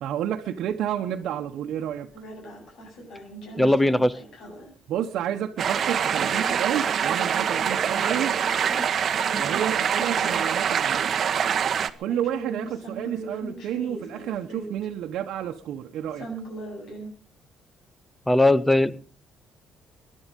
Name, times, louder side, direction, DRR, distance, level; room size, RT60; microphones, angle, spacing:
voice 1, 0.0-2.1 4.9-8.4 9.4-11.1 12.0-16.3, right 10 dB, 70° right, 3 dB, 1.1 m, -30 dB
sound 1, 2.1-4.7 6.2-10.7 11.1-11.2 12.1-14.9 16.1-17.1, right 1 dB, 55° left, 8.0 m, -40 dB
voice 2, 3.6-4.1 18.3-19.1, left 1 dB, 5° left, 18 dB, 0.7 m, -19 dB
sound 2, 5.6-11.9, right 8 dB, 40° right, 1.1 m, -25 dB
21.5 x 11.0 x 5.3 m, 0.39 s
cardioid pair, 160°, 0 cm